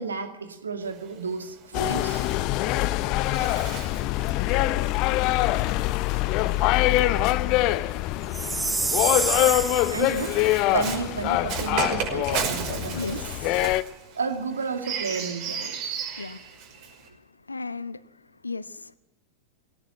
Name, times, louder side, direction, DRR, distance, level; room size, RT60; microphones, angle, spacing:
voice 1, 0.0-2.2 9.9-10.4 10.7-13.2 14.2-15.8, right 5 dB, 70° right, 6 dB, 2.4 m, -31 dB
Bird, 0.8-7.4 8.3-17.1, right 7 dB, 45° right, 5.6 m, -36 dB
sound 1, 1.7-13.8, left 16 dB, 40° left, 0.8 m, -24 dB
Chime, 8.3-10.3, right 4 dB, 15° right, 0.8 m, -28 dB
voice 2, 17.5-18.0 18.4-19.0, left 3 dB, 80° left, 17 dB, 0.8 m, -34 dB
21.5 x 17.5 x 9.0 m, 0.99 s
figure-of-eight pair, 90°, 0 cm